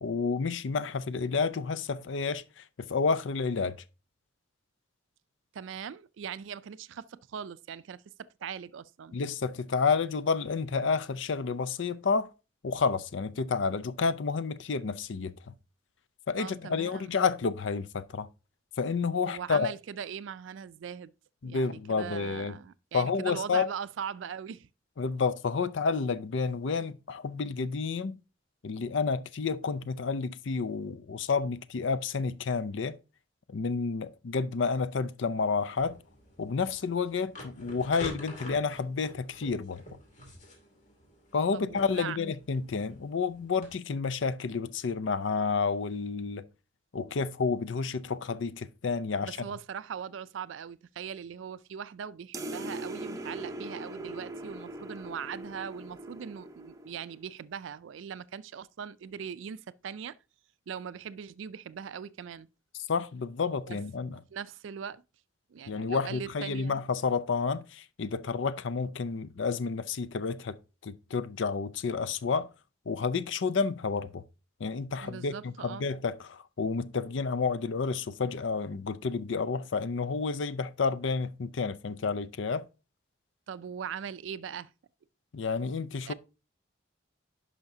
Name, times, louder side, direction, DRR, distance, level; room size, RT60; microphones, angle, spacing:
voice 1, 0.0-2.4 2.8-3.8 9.1-12.3 12.6-15.3 16.3-18.3 18.8-19.7 21.4-22.5 22.9-23.7 25.0-28.2 28.6-33.0 33.5-36.0 36.4-39.8 41.3-46.4 46.9-49.4 62.9-64.2 65.7-70.6 70.8-72.5 72.9-74.2 74.6-82.6 85.3-86.1, left 5 dB, 70° left, 0.5 m, -30 dB
voice 2, 5.5-9.2 16.4-17.2 19.3-21.1 21.4-24.7 41.5-42.2 49.2-60.2 60.7-62.5 63.7-63.8 64.1-65.0 65.5-66.8 75.0-75.9 83.5-84.7 86.1-86.2, right 7 dB, 75° right, 0.4 m, -40 dB
sound 1, 35.8-43.7, left 1 dB, 40° left, 2.5 m, -47 dB
sound 2, 52.3-57.2, right 1 dB, 15° right, 0.6 m, -40 dB
10.5 x 5.7 x 2.7 m
head